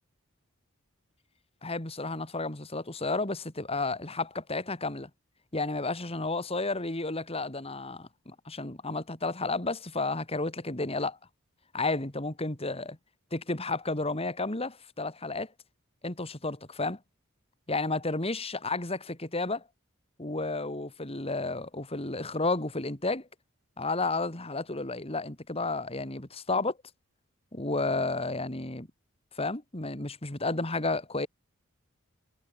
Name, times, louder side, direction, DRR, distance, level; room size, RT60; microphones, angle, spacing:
voice 1, 1.6-5.1 5.5-11.2 11.7-13.0 13.3-15.5 16.0-17.0 17.7-19.0 19.3-19.6 20.2-23.3 23.8-26.8 27.5-28.9 29.4-31.3, left 3 dB, 30° left, 2.5 m, -32 dB
head